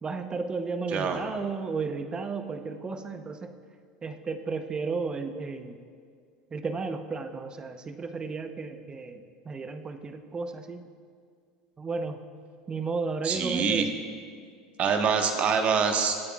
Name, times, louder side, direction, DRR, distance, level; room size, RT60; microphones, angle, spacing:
voice 1, 0.0-3.5 4.0-5.8 6.5-10.8 11.8-12.2 12.7-13.9, right 4 dB, 25° right, 8 dB, 0.9 m, -33 dB
voice 2, 13.2-13.8 14.8-16.1, right 6 dB, 45° right, 5 dB, 1.4 m, -25 dB
23.5 x 8.4 x 2.4 m, 2.1 s
hypercardioid pair, 80°, 3 cm